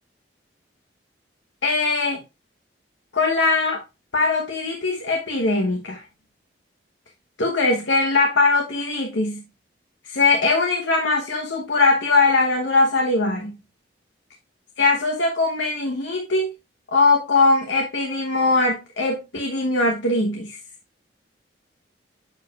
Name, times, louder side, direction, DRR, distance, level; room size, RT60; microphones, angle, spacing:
voice 1, 1.6-2.2 3.1-3.8 4.1-6.0 7.4-9.4 10.0-13.6 14.8-16.5 16.9-20.6, left 3 dB, 85° left, 1.0 m, -21 dB
6.9 x 6.6 x 2.4 m
head